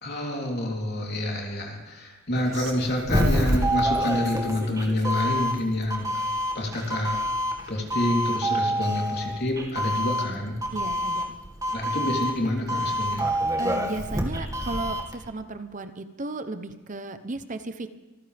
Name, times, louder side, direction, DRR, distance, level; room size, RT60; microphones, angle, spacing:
voice 1, 0.0-6.1 6.6-7.2 7.7-10.6 11.7-13.3, left 1 dB, 55° left, -1 dB, 3.5 m, -27 dB
Doorbell, 2.4-15.2, equal, 15° right, 2.0 m, -27 dB
voice 2, 10.7-11.3 13.6-17.9, right 2 dB, 40° right, 10 dB, 0.9 m, -34 dB
25.5 x 15.0 x 3.5 m, 1.2 s
head